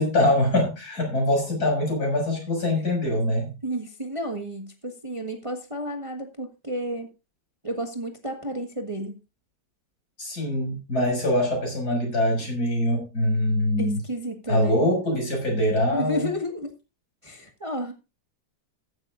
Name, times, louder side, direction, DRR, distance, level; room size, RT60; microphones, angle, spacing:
voice 1, 0.0-3.5 10.2-14.0 14.5-16.3, left 1 dB, 60° left, 1 dB, 7.1 m, -23 dB
voice 2, 3.6-7.1 7.6-9.2 13.8-14.9 15.9-16.7 17.2-17.9, equal, 20° right, 4 dB, 1.5 m, -31 dB
14.5 x 11.5 x 2.6 m, 0.29 s
omnidirectional pair, 1.9 m